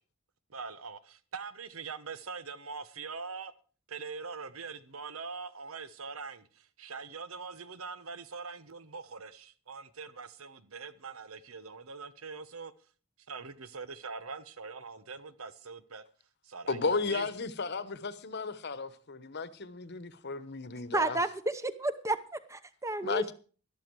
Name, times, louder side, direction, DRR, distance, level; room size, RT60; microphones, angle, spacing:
voice 1, 0.5-3.5 3.9-12.7 13.3-16.0 16.4-17.3, right 5 dB, 85° right, 1.1 m, -43 dB
voice 2, 16.7-21.2 23.0-23.3, left 4 dB, 55° left, 1.1 m, -34 dB
voice 3, 20.9-23.3, right 2 dB, 15° right, 1.0 m, -31 dB
13.0 x 12.5 x 4.6 m
head